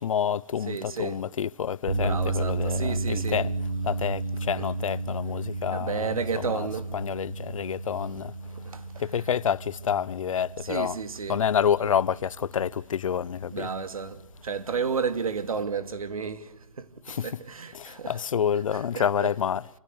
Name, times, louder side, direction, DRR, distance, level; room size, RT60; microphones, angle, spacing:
voice 1, 0.0-3.5 3.8-6.7 6.9-8.3 9.0-11.0 11.3-13.7 17.1-17.4 17.7-19.7, left 8 dB, 65° left, 0.8 m, -28 dB
voice 2, 0.6-1.2 2.0-3.5 4.6-4.7 5.7-6.9 8.5-9.2 10.6-11.5 13.5-18.2 18.7-19.4, right 5 dB, 80° right, 2.5 m, -33 dB
sound 1, 1.9-16.1, right 2 dB, 55° right, 4.5 m, -33 dB
27.5 x 17.0 x 8.2 m
hypercardioid pair, 150°, 18 cm